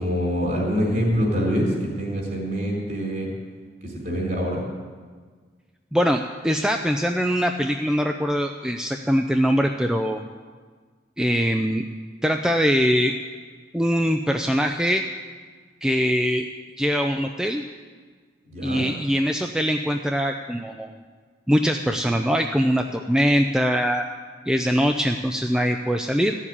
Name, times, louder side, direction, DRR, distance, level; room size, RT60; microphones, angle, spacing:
voice 1, 0.0-3.3 3.8-4.6 18.5-18.9, equal, 45° right, -1 dB, 4.3 m, -25 dB
voice 2, 5.9-10.3 11.2-11.8 12.2-13.1 13.7-15.0 15.8-16.4 16.8-17.6 18.6-21.0 21.5-24.0 24.5-26.4, equal, 5° right, 4 dB, 0.4 m, -22 dB
14.5 x 7.4 x 9.8 m, 1.6 s
head